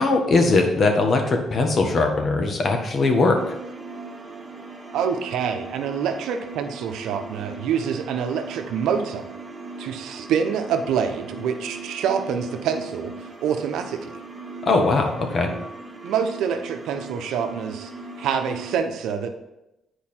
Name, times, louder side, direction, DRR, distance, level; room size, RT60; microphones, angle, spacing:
voice 1, 0.0-3.4 14.6-15.5, left 3 dB, 50° left, 3 dB, 1.4 m, -20 dB
sound 1, 3.3-18.8, right 3 dB, 20° right, 1.7 m, -39 dB
voice 2, 4.9-9.3 9.8-14.2 16.0-17.9 18.2-19.3, right 7 dB, 85° right, 6 dB, 0.8 m, -26 dB
8.5 x 4.7 x 4.4 m, 0.92 s
cardioid pair, 90°, 0 cm